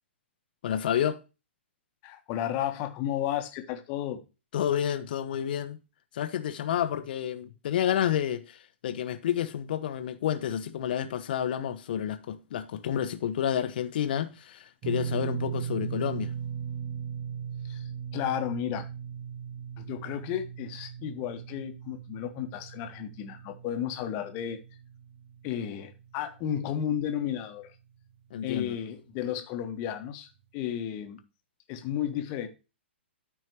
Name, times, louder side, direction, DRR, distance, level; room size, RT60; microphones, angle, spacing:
voice 1, 0.6-1.2 4.5-5.8 6.1-8.6 8.8-16.3 28.3-28.7, left 10 dB, 50° left, 0.9 m, -30 dB
voice 2, 2.0-4.2 17.6-18.9 19.8-24.6 25.4-27.8 28.4-31.2 31.7-32.5, left 10 dB, 30° left, 1.4 m, -33 dB
sound 1, 14.8-27.1 27.3-27.6 29.2-29.3, right 8 dB, 30° right, 0.6 m, -38 dB
13.5 x 4.6 x 3.1 m
figure-of-eight pair, 115°, 7 cm